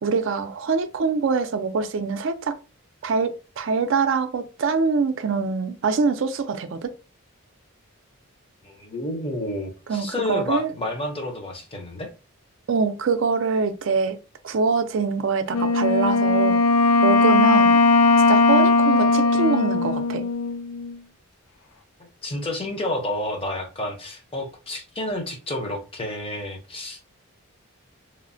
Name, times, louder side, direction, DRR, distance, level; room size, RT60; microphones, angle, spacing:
voice 1, 0.0-2.6 3.0-6.9 9.9-10.7 12.7-14.2 14.4-16.6 17.0-17.8 18.3-20.2, right 4 dB, 55° right, 0.4 m, -24 dB
voice 2, 8.6-12.1 22.2-27.1, left 1 dB, 25° left, 0.6 m, -30 dB
Wind instrument woodwind instrument, 15.5-21.0, left 3 dB, 85° left, 0.4 m, -18 dB
3.1 x 2.1 x 2.5 m
head